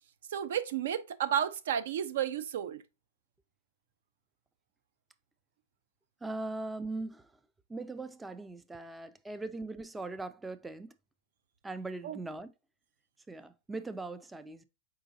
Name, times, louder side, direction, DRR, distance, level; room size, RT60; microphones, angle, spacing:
voice 1, 0.3-2.8 12.0-12.2, right 9 dB, 70° right, 0.5 m, -32 dB
voice 2, 6.2-7.3 7.7-10.9 11.6-12.5 13.3-14.6, right 2 dB, 5° right, 0.3 m, -40 dB
4.8 x 3.8 x 2.6 m
hypercardioid pair, 145°, 0 cm